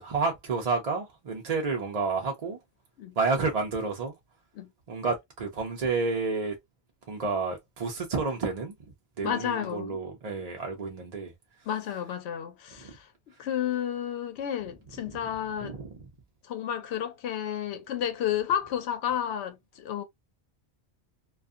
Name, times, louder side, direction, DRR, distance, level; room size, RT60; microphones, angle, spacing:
voice 1, 0.0-2.6 3.2-4.1 4.9-6.5 7.1-8.7 9.2-11.3 12.8-12.9 15.1-15.2 15.6-15.9, right 4 dB, 45° right, 0.6 m, -30 dB
voice 2, 9.2-10.0 11.7-13.1 13.4-15.8 16.4-20.0, left 9 dB, 80° left, 0.8 m, -31 dB
2.6 x 2.3 x 2.4 m
omnidirectional pair, 1.1 m